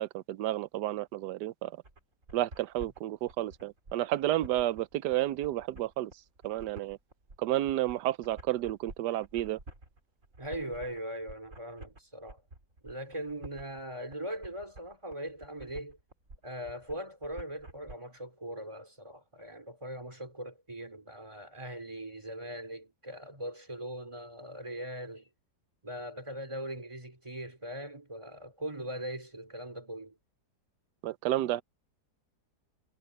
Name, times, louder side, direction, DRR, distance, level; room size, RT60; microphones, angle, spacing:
voice 1, 0.0-1.7 2.3-6.1 6.4-7.0 7.4-9.6 31.0-31.6, right 14 dB, 90° right, 1.2 m, -31 dB
sound 1, 1.8-17.9, right 2 dB, 50° right, 4.2 m, -50 dB
voice 2, 10.4-12.4 12.8-16.0 16.4-25.3 25.8-30.2, right 1 dB, 15° right, 3.6 m, -40 dB
omnidirectional pair, 1.8 m